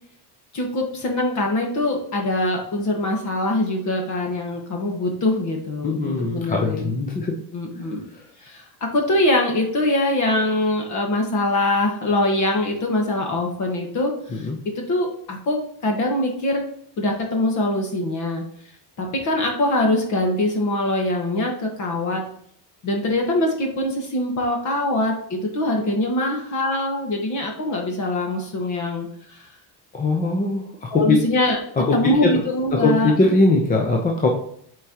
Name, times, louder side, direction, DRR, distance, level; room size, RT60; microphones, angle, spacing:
voice 1, 0.5-7.0 7.5-8.0 8.4-14.4 14.7-16.7 17.0-18.4 19.0-22.2 22.8-29.4 30.9-31.6 31.9-33.1, left 1 dB, 40° left, 2 dB, 1.5 m, -23 dB
voice 2, 5.8-7.4 14.3-14.6 29.9-30.7 30.9-31.2 31.8-32.4 32.7-34.3, left 2 dB, 20° left, 0 dB, 0.6 m, -20 dB
8.3 x 4.6 x 2.9 m, 0.66 s
cardioid pair, 170°, 46 cm